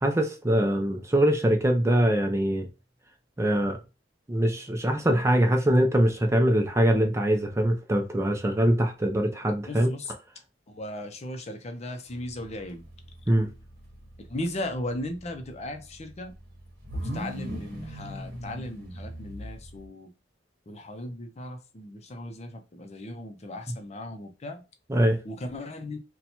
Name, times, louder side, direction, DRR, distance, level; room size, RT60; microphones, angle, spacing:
voice 1, 0.0-2.7 3.4-3.8 4.3-9.9 13.3-13.5 24.9-25.2, right 1 dB, 15° right, 0.4 m, -23 dB
voice 2, 9.7-10.1 10.7-12.8 14.3-16.3 16.9-20.1 20.7-24.6 25.2-26.0, left 1 dB, 35° left, 0.6 m, -37 dB
sound 1, 12.1-19.9, equal, 55° right, 1.1 m, -40 dB
2.8 x 2.3 x 4.2 m
head